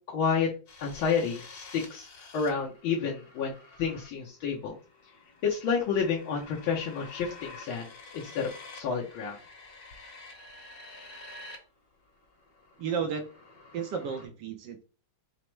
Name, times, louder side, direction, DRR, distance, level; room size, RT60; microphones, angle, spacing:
voice 1, 0.1-0.5 0.8-4.8 5.4-9.4, left 6 dB, 80° left, -2 dB, 1.6 m, -30 dB
sound 1, 0.7-11.5 11.8-14.3, left 3 dB, 50° left, 1.7 m, -49 dB
voice 2, 12.8-13.3 13.7-14.8, right 6 dB, 70° right, 6 dB, 1.1 m, -33 dB
5.2 x 2.0 x 4.4 m, 0.35 s
omnidirectional pair, 2.2 m